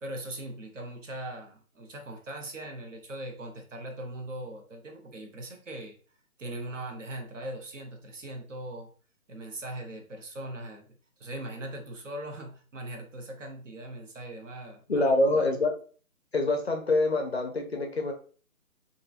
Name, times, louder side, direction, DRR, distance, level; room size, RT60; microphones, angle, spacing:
voice 1, 0.0-5.9 6.4-8.9 9.3-15.4, right 1 dB, 55° right, 3 dB, 0.8 m, -40 dB
voice 2, 14.9-15.8 16.3-18.1, left 2 dB, 45° left, 3 dB, 0.5 m, -25 dB
2.9 x 2.5 x 2.4 m, 0.40 s
figure-of-eight pair, 160°, 45 cm